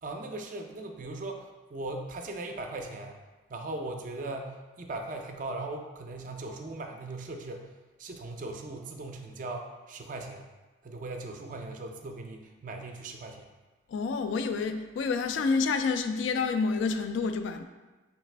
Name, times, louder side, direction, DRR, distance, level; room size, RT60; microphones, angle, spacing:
voice 1, 0.0-3.2 3.5-7.7 8.0-10.5 10.8-13.5, right 2 dB, 45° right, 3 dB, 0.4 m, -39 dB
voice 2, 13.9-17.6, left 4 dB, 85° left, 8 dB, 0.3 m, -28 dB
4.1 x 3.1 x 3.2 m, 1.2 s
head